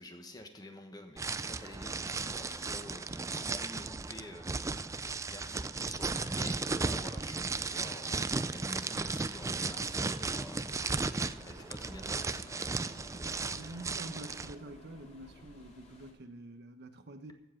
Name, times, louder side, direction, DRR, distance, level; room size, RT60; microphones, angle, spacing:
voice 1, 0.0-4.6 5.2-11.0 11.5-12.8, left 1 dB, 20° left, 1.3 m, -49 dB
sound 1, 1.2-14.5, right 3 dB, 15° right, 0.4 m, -35 dB
sound 2, 10.4-16.1, left 1 dB, 35° left, 2.7 m, -54 dB
voice 2, 13.5-17.3, right 2 dB, 60° right, 1.1 m, -47 dB
15.0 x 7.5 x 5.9 m
head